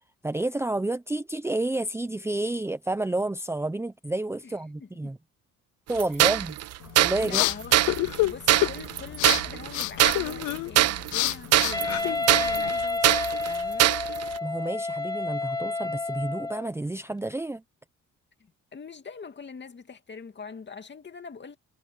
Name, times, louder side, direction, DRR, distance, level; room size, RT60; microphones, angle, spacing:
voice 1, 0.2-5.2 5.9-6.6 7.0-7.4 14.4-17.6, right 2 dB, 10° right, 0.7 m, -30 dB
voice 2, 4.4-5.1 6.1-6.5 7.2-7.8 8.2-14.0 18.4-21.6, left 5 dB, 35° left, 2.5 m, -43 dB
sound 1, 6.0-14.4, right 14 dB, 55° right, 0.5 m, -23 dB
sound 2, 6.8-12.7, left 17 dB, 80° left, 0.6 m, -29 dB
Wind instrument woodwind instrument, 11.7-16.7, left 3 dB, 15° left, 1.0 m, -30 dB
cardioid pair, 90°, 30 cm